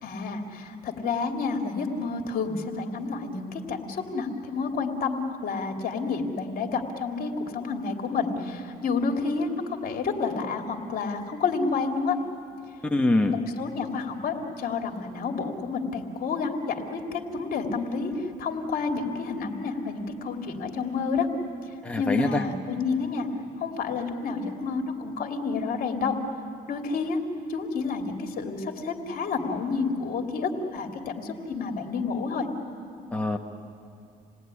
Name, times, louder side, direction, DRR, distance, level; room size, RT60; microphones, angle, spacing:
voice 1, 0.0-12.2 13.3-21.3 22.0-23.3 23.6-26.2 26.7-27.2 27.5-32.5, left 4 dB, 60° left, 3 dB, 2.8 m, -29 dB
voice 2, 12.8-13.4 21.8-22.4 33.1-33.4, left 2 dB, 5° left, 3 dB, 1.2 m, -24 dB
28.0 x 19.0 x 9.8 m, 2.5 s
cardioid pair, 110°, 17 cm